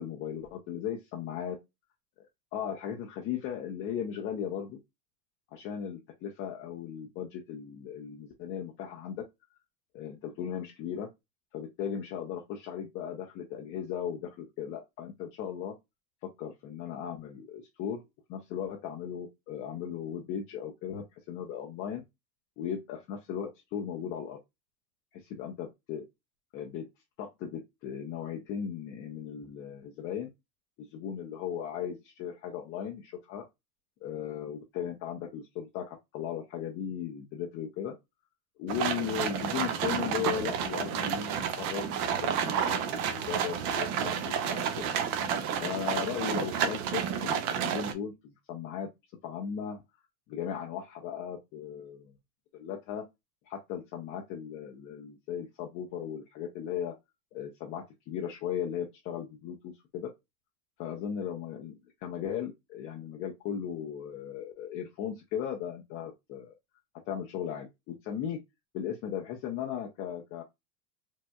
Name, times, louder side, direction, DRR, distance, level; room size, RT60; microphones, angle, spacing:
voice 1, 0.0-1.6 2.5-4.8 5.5-9.2 9.9-11.1 11.5-15.7 16.2-18.0 18.3-22.0 22.6-24.4 25.4-26.0 26.5-26.9 27.2-30.3 30.8-33.4 34.0-37.9 38.6-44.6 45.6-47.4 47.7-48.9 49.2-49.8 50.3-52.1 52.5-53.0 53.4-56.9 57.3-60.1 60.8-66.5 67.1-68.4 68.7-70.4, left 8 dB, 30° left, 0.4 m, -37 dB
sound 1, 38.7-47.9, right 8 dB, 55° right, 0.7 m, -30 dB
4.4 x 2.1 x 2.2 m
supercardioid pair, 120°, 49 cm